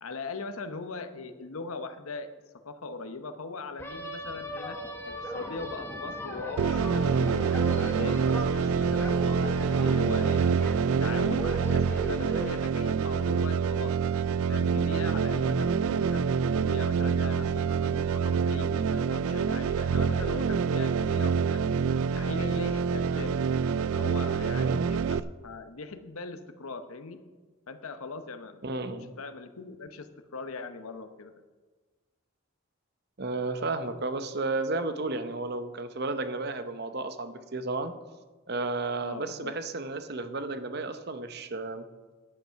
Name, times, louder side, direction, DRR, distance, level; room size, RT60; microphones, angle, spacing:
voice 1, 0.0-2.3 2.6-4.8 5.0-9.4 9.6-10.7 11.0-16.2 16.6-21.6 22.1-23.4 23.9-27.2 27.7-28.7 29.2-31.3 39.0-39.5, left 3 dB, 90° left, 9 dB, 0.9 m, -40 dB
sound 1, 3.8-12.6, left 1 dB, 10° left, 1.2 m, -38 dB
sound 2, 6.6-25.2, right 6 dB, 80° right, 0.3 m, -26 dB
voice 2, 24.6-24.9 28.6-29.1 33.2-37.9 38.5-41.9, right 3 dB, 50° right, 10 dB, 0.7 m, -33 dB
11.0 x 8.1 x 5.7 m, 1.3 s
head